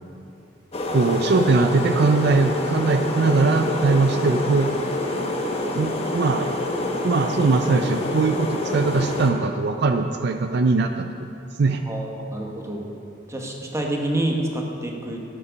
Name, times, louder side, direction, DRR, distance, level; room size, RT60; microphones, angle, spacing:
sound 1, 0.7-9.3, left 1 dB, 35° left, 1.2 m, -26 dB
voice 1, 0.9-4.7 5.7-6.5 7.0-11.1 11.6-11.8, right 3 dB, 60° right, 6 dB, 0.5 m, -21 dB
voice 2, 11.9-12.9 13.3-15.2, right 1 dB, 15° right, 0 dB, 1.3 m, -28 dB
12.5 x 8.6 x 5.2 m, 2.7 s
head